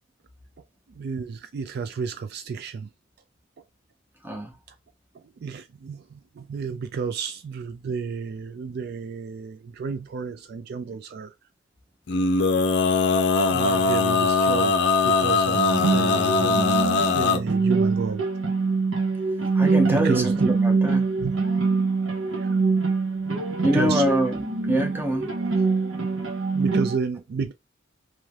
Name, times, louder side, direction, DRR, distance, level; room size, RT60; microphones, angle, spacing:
voice 1, 1.0-2.9 5.1-11.3 13.5-14.8 15.0-16.8 17.1-18.2 19.9-20.5 21.2-21.4 22.4-22.6 23.7-24.0 26.5-27.5, right 5 dB, 50° right, 0.3 m, -31 dB
Male singing, 12.1-17.4, left 4 dB, 60° left, 0.5 m, -21 dB
sound 1, 15.5-27.0, right 4 dB, 70° right, 1.2 m, -24 dB
voice 2, 19.5-21.0 23.6-25.3, equal, 10° right, 0.7 m, -25 dB
3.2 x 3.0 x 2.3 m
head